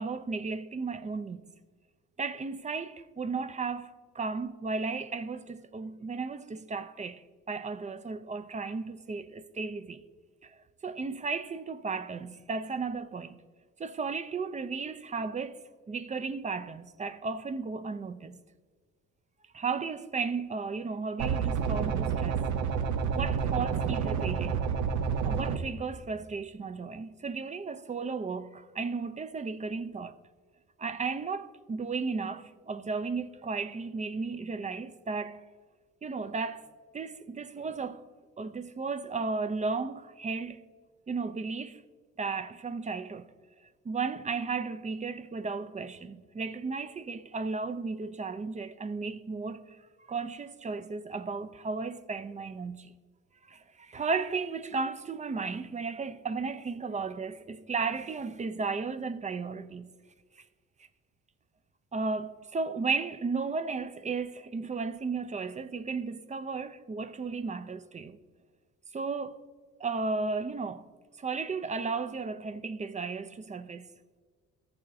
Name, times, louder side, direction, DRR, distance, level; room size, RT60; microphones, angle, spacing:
voice 1, 0.0-1.4 2.2-10.0 10.4-13.4 13.8-15.6 15.9-18.4 19.5-22.4 23.1-24.6 25.2-30.2 30.8-35.4 36.0-36.7 36.9-38.0 38.4-40.6 41.1-41.8 42.2-43.3 43.8-49.8 50.1-52.9 53.5-59.9 61.9-68.2 68.9-69.4 69.8-70.9 71.2-73.9, right 4 dB, 25° right, 0.4 m, -34 dB
sound 1, 21.2-25.6, right 6 dB, 70° right, 0.7 m, -29 dB
14.0 x 7.0 x 2.7 m
cardioid pair, 90°, 30 cm